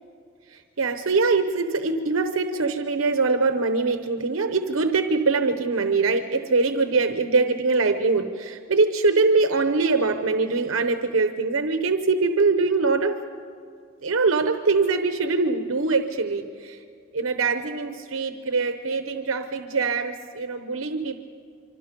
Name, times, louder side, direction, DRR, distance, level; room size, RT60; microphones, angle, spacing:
voice 1, 0.5-13.2 14.0-16.8 17.1-21.2, right 3 dB, 85° right, 7 dB, 0.9 m, -23 dB
25.5 x 25.0 x 5.3 m, 2.4 s
head